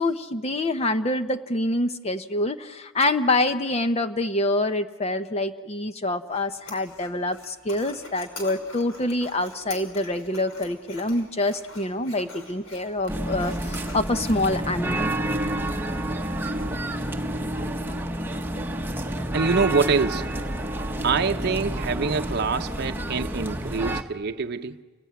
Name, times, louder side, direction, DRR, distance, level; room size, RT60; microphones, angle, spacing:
voice 1, 0.0-15.1, left 2 dB, 30° left, 9 dB, 0.7 m, -26 dB
sound 1, 6.3-14.6, left 2 dB, 75° left, 5.4 m, -45 dB
sound 2, 13.1-24.0, right 1 dB, 10° right, 1.2 m, -29 dB
voice 2, 19.3-20.3 21.0-24.8, right 4 dB, 50° right, 6 dB, 0.7 m, -25 dB
29.0 x 20.0 x 9.4 m, 1.4 s
head